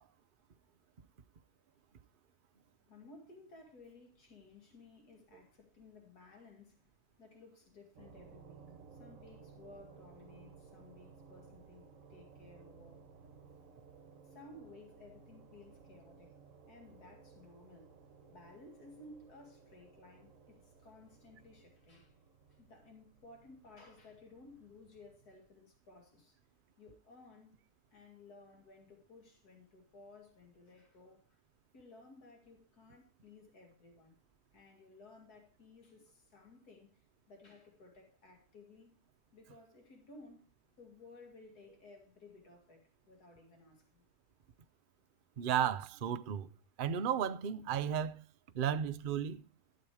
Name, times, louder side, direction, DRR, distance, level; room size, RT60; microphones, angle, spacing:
voice 1, 2.8-6.9 7.2-8.7 8.9-13.0 14.2-16.4 16.7-17.9 18.3-22.2 22.5-26.3 26.8-27.6 27.9-31.4 31.7-34.2 34.5-39.0 39.3-40.4 40.8-44.0, left 2 dB, 65° left, 2.8 m, -57 dB
sound 1, 7.9-25.4, right 5 dB, 50° right, 1.6 m, -59 dB
voice 2, 45.4-46.5 46.8-48.2 48.5-49.4, right 9 dB, 80° right, 0.4 m, -34 dB
12.5 x 7.9 x 4.8 m
omnidirectional pair, 1.8 m